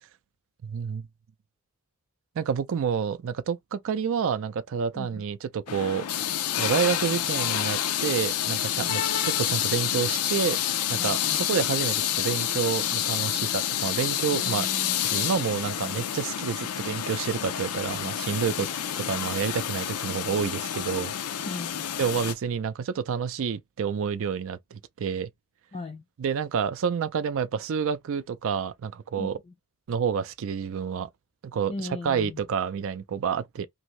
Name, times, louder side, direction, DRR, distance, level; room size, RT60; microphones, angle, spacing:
voice 1, 0.6-1.1 2.4-6.0 6.6-10.6 10.9-14.7 15.0-18.7 19.0-21.1 22.0-25.3 26.2-29.4 29.9-31.1 31.4-31.7 32.0-33.7, right 7 dB, 65° right, 0.4 m, -29 dB
sound 1, 5.7-22.3, left 10 dB, 85° left, 0.5 m, -28 dB
voice 2, 11.0-11.4 14.3-15.0 18.6-18.8 21.4-21.9 25.7-26.0 29.2-29.5 31.7-32.4, left 2 dB, 30° left, 0.4 m, -38 dB
2.7 x 2.6 x 3.1 m
head